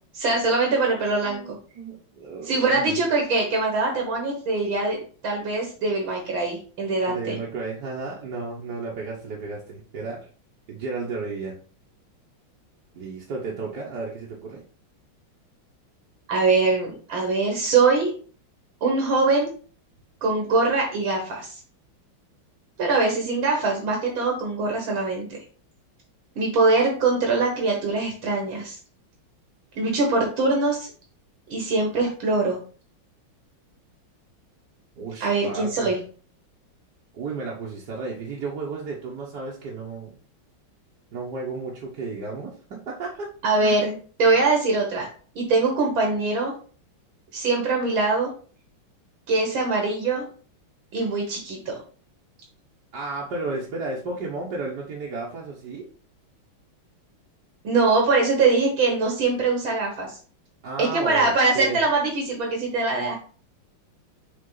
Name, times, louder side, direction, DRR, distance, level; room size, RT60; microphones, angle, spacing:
voice 1, 0.1-1.4 2.4-7.4 16.3-18.1 18.8-19.5 20.2-21.6 22.8-25.4 26.4-28.8 29.8-30.9 31.5-32.6 35.2-36.0 43.4-45.1 45.4-46.5 47.3-48.3 49.3-50.3 50.9-51.8 57.6-60.2 60.8-63.1, right 3 dB, 75° right, 0 dB, 2.3 m, -23 dB
voice 2, 1.8-3.0 7.1-10.2 10.7-11.5 12.9-14.6 35.0-35.9 37.1-40.1 41.1-43.3 43.6-43.8 52.9-55.8 60.6-61.8, right 3 dB, 55° right, -4 dB, 1.7 m, -33 dB
6.7 x 4.3 x 3.9 m, 0.41 s
omnidirectional pair, 2.2 m